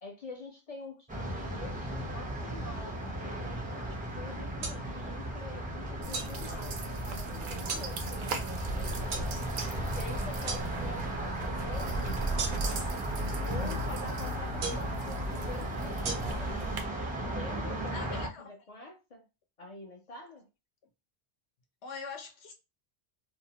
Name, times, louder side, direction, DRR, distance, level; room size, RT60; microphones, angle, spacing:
voice 1, 0.0-9.2 9.9-12.8 13.4-16.8 17.3-19.2 19.6-20.5, left 3 dB, 50° left, 0.4 m, -46 dB
sound 1, 1.1-18.3, right 1 dB, 10° right, 0.4 m, -36 dB
sound 2, 4.6-4.8 6.1-6.3 7.7-7.9 9.1-9.3 10.5-10.6 12.4-12.8 14.6-14.9 16.0-16.1, right 4 dB, 80° right, 0.9 m, -35 dB
sound 3, 6.0-16.8, right 2 dB, 60° right, 0.6 m, -37 dB
voice 2, 17.9-18.5 21.8-22.5, left 5 dB, 80° left, 0.9 m, -42 dB
2.6 x 2.0 x 2.7 m
omnidirectional pair, 1.1 m